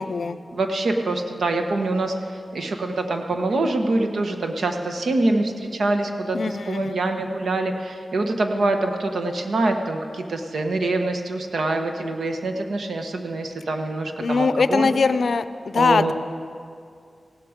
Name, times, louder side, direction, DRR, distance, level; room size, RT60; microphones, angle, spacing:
voice 1, 0.0-0.4 6.3-7.0 14.2-16.1, left 4 dB, 75° left, 13 dB, 0.5 m, -22 dB
voice 2, 0.5-2.1 2.5-14.9 15.7-16.1, right 2 dB, 85° right, 5 dB, 1.1 m, -25 dB
16.0 x 12.0 x 5.1 m, 2.3 s
wide cardioid pair, 80°, 0 cm